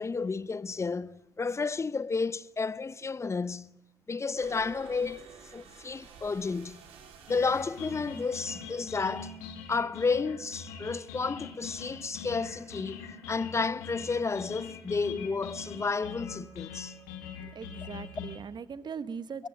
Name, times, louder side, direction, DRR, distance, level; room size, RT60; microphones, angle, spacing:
voice 1, 0.0-3.8 4.1-6.8 7.3-9.3 9.7-13.0 13.3-16.9, left 4 dB, 25° left, 0.8 m, -31 dB
sound 1, 4.4-9.9, right 6 dB, 65° right, 3.7 m, -53 dB
sound 2, 7.3-18.4, left 6 dB, 75° left, 2.4 m, -43 dB
voice 2, 17.4-19.5, right 6 dB, 45° right, 1.2 m, -40 dB
22.5 x 17.5 x 7.6 m
figure-of-eight pair, 45°, 11 cm